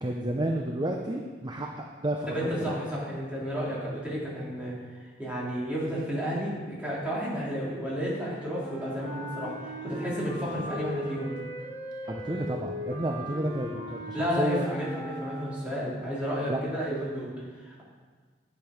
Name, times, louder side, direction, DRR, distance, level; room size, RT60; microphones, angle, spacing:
voice 1, 0.0-2.5 12.1-14.6 16.5-16.6, right 1 dB, 25° right, 1 dB, 0.6 m, -31 dB
voice 2, 2.3-9.5 9.8-11.3 14.1-17.3 17.6-17.8, equal, 5° right, -7 dB, 3.0 m, -32 dB
Wind instrument woodwind instrument, 8.5-15.9, equal, 80° right, 3.0 m, -38 dB
11.0 x 7.4 x 5.1 m, 1.5 s
head